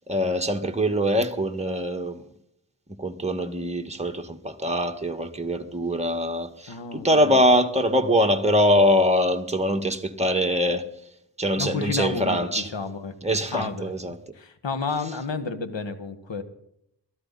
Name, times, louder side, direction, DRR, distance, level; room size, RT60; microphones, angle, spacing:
voice 1, 0.0-2.2 3.0-10.9 11.4-12.7 13.2-14.2, equal, 15° right, 1.9 m, -23 dB
voice 2, 6.7-7.4 11.6-12.4 12.7-13.1 13.5-13.9 14.4-16.4, left 4 dB, 85° left, 1.7 m, -31 dB
22.0 x 13.5 x 4.2 m
cardioid pair, 45°, 43 cm